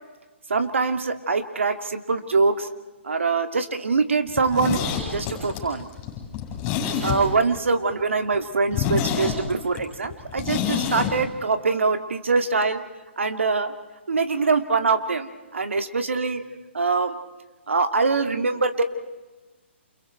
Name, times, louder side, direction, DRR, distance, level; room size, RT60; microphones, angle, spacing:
voice 1, 0.5-2.7 3.0-5.9 7.0-12.8 13.2-13.7 14.1-16.4 16.7-17.2 17.7-18.8, right 4 dB, 80° right, 8 dB, 2.4 m, -23 dB
Zipper (clothing), 4.3-7.6 7.9-8.0 8.3-8.4 8.7-11.1 11.4-11.5, left 8 dB, 30° left, 7.7 m, -27 dB
29.0 x 29.0 x 4.5 m, 1.2 s
hypercardioid pair, 135°, 7 cm